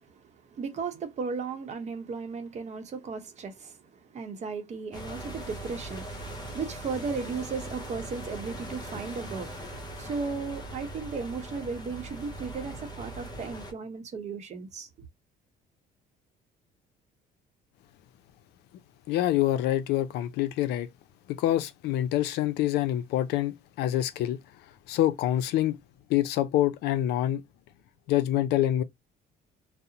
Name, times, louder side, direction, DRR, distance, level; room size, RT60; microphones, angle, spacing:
voice 1, 0.0-14.9, right 5 dB, 40° right, 0.8 m, -36 dB
sound 1, 4.9-13.7, right 1 dB, 25° left, 0.7 m, -40 dB
voice 2, 19.1-20.9 21.3-24.4 24.9-25.8 26.1-27.4 28.1-28.8, left 13 dB, 80° left, 0.5 m, -26 dB
2.5 x 2.0 x 2.7 m
cardioid pair, 110°, 17 cm